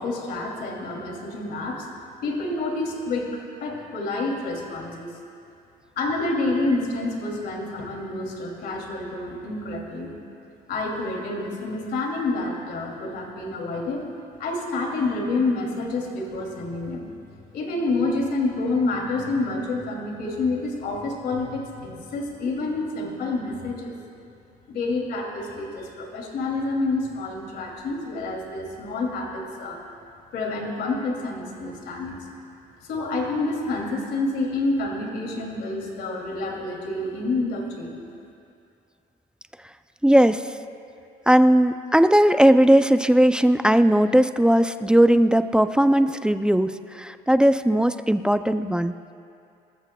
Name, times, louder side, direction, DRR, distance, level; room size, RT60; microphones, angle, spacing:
voice 1, 0.0-1.9 2.2-3.3 3.6-5.1 6.0-10.1 10.7-14.0 14.4-17.1 17.5-24.0 24.7-29.8 30.3-32.2 32.9-38.0, left 2 dB, 65° left, 0 dB, 2.7 m, -28 dB
voice 2, 40.0-40.4 41.3-49.1, right 1 dB, 5° right, 10 dB, 0.4 m, -18 dB
26.0 x 14.0 x 2.3 m, 2.5 s
cardioid pair, 110°, 17 cm